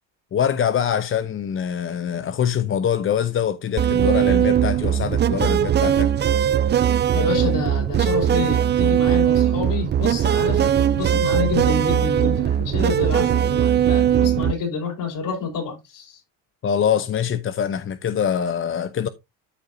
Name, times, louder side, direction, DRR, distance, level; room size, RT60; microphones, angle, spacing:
voice 1, 0.3-6.1 16.6-19.1, left 8 dB, 30° left, 0.6 m, -24 dB
sound 1, 3.8-14.5, right 9 dB, 25° right, 0.4 m, -19 dB
voice 2, 7.1-16.2, left 5 dB, 50° left, 5.3 m, -28 dB
12.5 x 5.3 x 2.7 m
cardioid pair, 105°, 41 cm